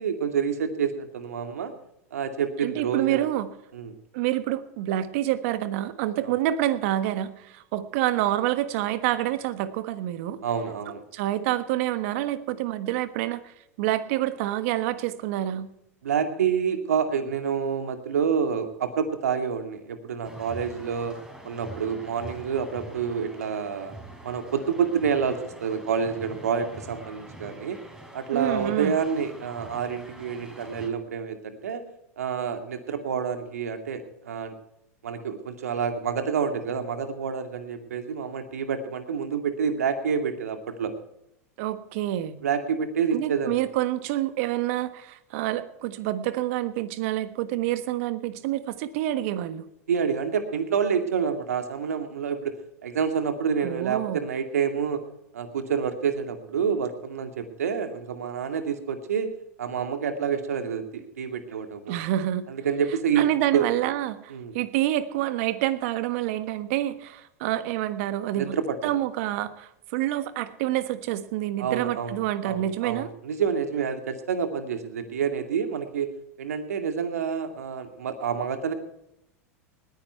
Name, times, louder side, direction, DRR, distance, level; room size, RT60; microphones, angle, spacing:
voice 1, 0.0-1.7 2.1-3.3 3.7-3.9 6.2-6.3 10.4-11.0 16.0-21.1 21.4-24.0 24.2-27.8 28.1-31.8 32.2-34.6 35.0-40.9 42.4-43.6 49.9-52.6 52.8-55.0 55.3-59.3 59.6-62.0 62.5-63.7 64.3-64.6 68.3-69.0 71.6-76.1 76.4-78.7, right 7 dB, 85° right, 7 dB, 2.2 m, -28 dB
voice 2, 2.6-3.5 4.1-10.4 10.9-15.7 28.3-28.9 41.6-42.4 43.1-49.7 53.6-54.2 61.9-62.5 63.2-68.6 68.8-73.1, right 13 dB, 60° right, 13 dB, 1.4 m, -27 dB
sound 1, 20.2-30.9, right 1 dB, 10° right, 4.1 m, -45 dB
20.0 x 10.0 x 4.5 m, 0.81 s
hypercardioid pair, 100°, 8 cm